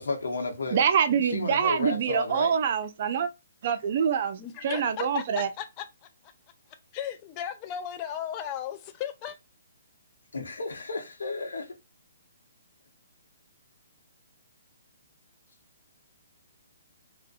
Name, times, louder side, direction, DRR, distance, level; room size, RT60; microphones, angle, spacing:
voice 1, 0.0-0.8 1.3-2.5 10.3-11.7, left 3 dB, 80° left, 0.8 m, -32 dB
voice 2, 0.7-3.3 3.6-5.5, right 7 dB, 50° right, 0.4 m, -25 dB
voice 3, 4.4-5.8 6.9-9.4, left 9 dB, 30° left, 0.3 m, -35 dB
2.5 x 2.1 x 2.4 m
hypercardioid pair, 140°, 0 cm